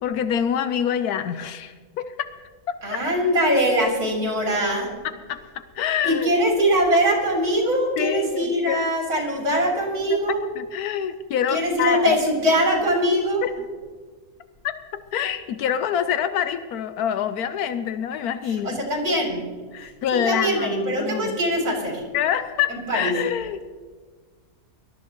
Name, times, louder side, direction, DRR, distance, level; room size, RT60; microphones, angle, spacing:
voice 1, 0.0-2.3 2.7-3.0 5.3-6.3 8.0-8.9 10.1-12.1 13.4-13.5 14.6-14.7 15.1-18.8 19.7-21.4 22.1-23.6, left 9 dB, 85° left, 11 dB, 1.1 m, -26 dB
voice 2, 2.8-4.9 6.0-10.4 11.5-13.5 18.5-19.5 20.1-22.0 22.7-23.1, equal, 85° right, -1 dB, 4.2 m, -22 dB
24.0 x 13.5 x 3.0 m, 1.5 s
omnidirectional pair, 1.6 m